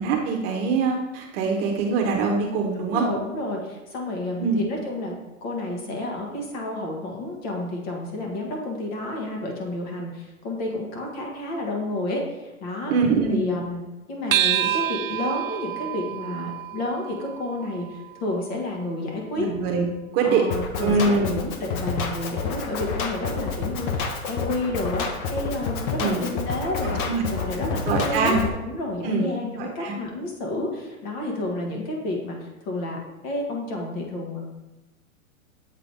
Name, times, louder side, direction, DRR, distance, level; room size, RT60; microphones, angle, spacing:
voice 1, 0.0-3.0 4.4-4.6 12.9-13.4 19.4-19.9 20.1-20.5 20.8-21.3 26.0-26.2 26.8-27.2 27.9-28.4 29.0-29.3 29.6-29.9, right 4 dB, 45° right, 1 dB, 1.0 m, -23 dB
voice 2, 2.8-5.1 5.4-12.9 13.3-13.8 14.1-19.5 20.2-25.0 25.3-28.4 28.6-34.5, left 2 dB, 45° left, 0 dB, 1.7 m, -30 dB
sound 1, 14.3-19.1, right 12 dB, 65° right, 0.6 m, -28 dB
Drum kit, 20.5-28.5, left 4 dB, 25° left, 0.4 m, -29 dB
7.5 x 3.8 x 3.4 m, 1.1 s
hypercardioid pair, 125°, 42 cm